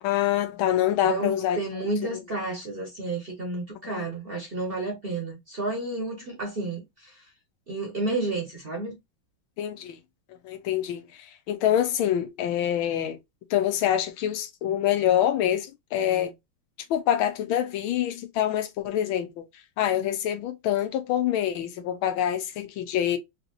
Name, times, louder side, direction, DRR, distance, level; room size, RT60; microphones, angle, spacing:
voice 1, 0.0-1.6 3.9-4.0 9.6-10.0 10.4-11.0 11.5-13.2 13.5-16.3 16.9-19.4 19.8-23.2, left 11 dB, 80° left, 1.5 m, -25 dB
voice 2, 1.0-7.2 7.7-8.9, right 2 dB, 40° right, 0.9 m, -31 dB
4.1 x 2.8 x 2.5 m
omnidirectional pair, 2.2 m